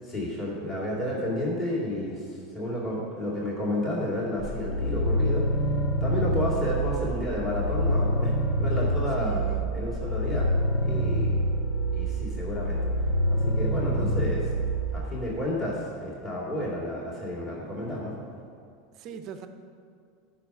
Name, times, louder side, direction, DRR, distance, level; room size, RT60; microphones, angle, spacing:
voice 1, 0.0-5.5 6.0-9.4 9.7-10.5 10.8-11.4 11.9-12.9 13.3-14.5 14.9-18.2, left 1 dB, 15° left, -6 dB, 2.3 m, -31 dB
sound 1, 4.4-15.0, equal, 70° left, 1.3 m, -26 dB
voice 2, 9.2-9.8 19.0-19.5, right 6 dB, 35° right, 8 dB, 0.6 m, -39 dB
11.5 x 5.8 x 6.0 m, 2.3 s
supercardioid pair, 170°, 0 cm